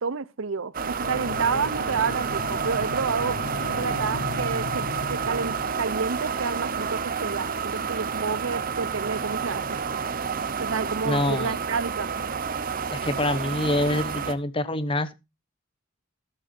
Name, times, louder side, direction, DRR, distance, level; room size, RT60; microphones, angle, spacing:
voice 1, 0.0-3.4 3.8-9.8 10.6-12.1, right 5 dB, 70° right, 0.6 m, -29 dB
sound 1, 0.7-14.3, right 6 dB, 40° right, 0.8 m, -30 dB
sound 2, 1.0-6.3, left 3 dB, 70° left, 1.1 m, -37 dB
voice 2, 11.1-11.6 12.9-15.1, left 1 dB, 25° left, 0.7 m, -26 dB
13.5 x 12.0 x 2.6 m
head